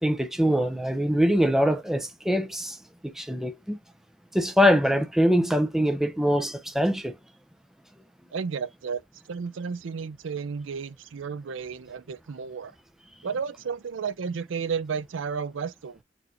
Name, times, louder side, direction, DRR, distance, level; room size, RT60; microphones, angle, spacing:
voice 1, 0.0-2.8 3.0-3.8 4.3-7.2, equal, ahead, 0.5 m, -23 dB
voice 2, 8.3-9.0 9.3-12.7 13.2-16.0, right 6 dB, 85° right, 0.5 m, -32 dB
4.3 x 2.5 x 4.3 m
head